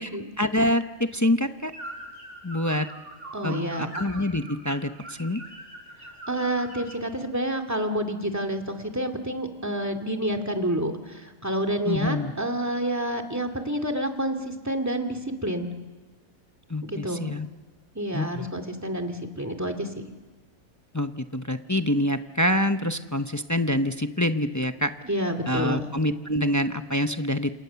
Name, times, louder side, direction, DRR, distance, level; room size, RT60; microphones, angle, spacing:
voice 1, 0.4-1.7 2.4-2.9 3.4-5.4 11.9-12.3 16.7-17.5 18.1-18.5 20.9-24.9 25.5-27.5, left 1 dB, 15° left, 8 dB, 0.6 m, -26 dB
sound 1, 1.7-7.1, right 1 dB, 55° right, 6.0 m, -42 dB
voice 2, 3.3-3.9 6.3-15.7 16.9-17.2 17.9-20.0 25.0-25.9, right 1 dB, 10° right, 7 dB, 2.3 m, -29 dB
28.5 x 28.0 x 7.0 m, 1.3 s
omnidirectional pair, 1.5 m